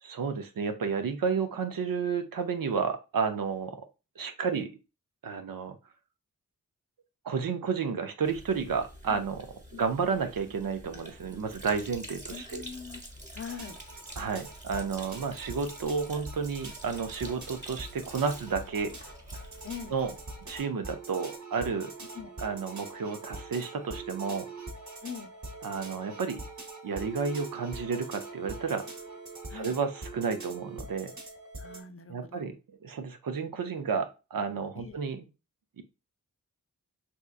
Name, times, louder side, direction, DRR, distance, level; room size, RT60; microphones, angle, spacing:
voice 1, 0.0-3.9 4.2-4.7 5.2-5.8 7.2-9.4 9.7-12.6 14.2-18.9 19.9-20.1 20.5-21.9 22.4-24.5 25.6-26.4 26.8-28.9 29.5-31.1 32.1-32.5 32.8-35.2 35.8-35.9, right 5 dB, 80° right, 7 dB, 0.6 m, -31 dB
Sink (filling or washing), 8.2-20.6, right 1 dB, 20° right, 1.2 m, -47 dB
voice 2, 12.3-13.0 13.3-13.8 19.6-19.9 22.1-22.3 25.0-25.3 29.5-29.7 31.6-32.5 34.7-35.0, left 7 dB, 40° left, 8 dB, 0.6 m, -42 dB
sound 1, 13.5-31.8, right 3 dB, 55° right, 1.1 m, -43 dB
3.6 x 2.8 x 2.4 m, 0.29 s
cardioid pair, 50°, 34 cm